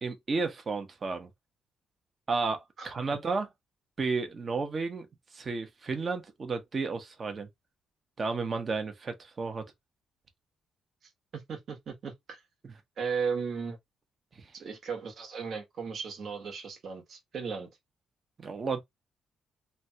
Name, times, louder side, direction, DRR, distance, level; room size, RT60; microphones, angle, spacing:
voice 1, 0.0-1.3 2.3-3.5 4.0-5.1 5.3-7.5 8.2-9.6 12.6-12.7 14.4-14.5 18.4-18.8, right 4 dB, 40° right, 0.8 m, -32 dB
voice 2, 11.3-12.4 13.0-13.8 14.5-17.7, right 6 dB, 55° right, 1.2 m, -36 dB
3.2 x 2.3 x 2.7 m
cardioid pair, 90°, 0 cm